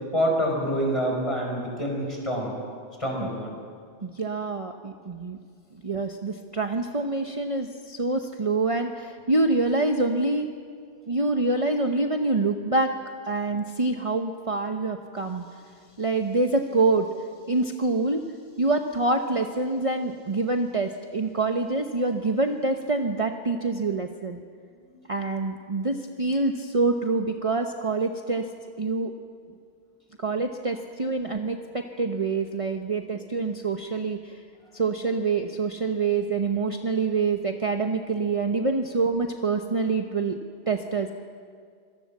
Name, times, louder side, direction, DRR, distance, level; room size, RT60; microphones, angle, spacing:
voice 1, 0.1-2.5 3.0-3.6 24.8-24.9, equal, 30° left, 0 dB, 5.5 m, -26 dB
voice 2, 4.0-5.4 5.8-10.5 11.1-12.9 13.2-15.4 16.0-17.1 17.5-18.3 18.6-24.4 25.1-28.5 28.8-29.1 30.2-34.4 34.7-40.4 40.7-41.1, right 3 dB, 30° right, 4 dB, 1.0 m, -26 dB
25.0 x 18.5 x 7.3 m, 2.1 s
omnidirectional pair, 1.1 m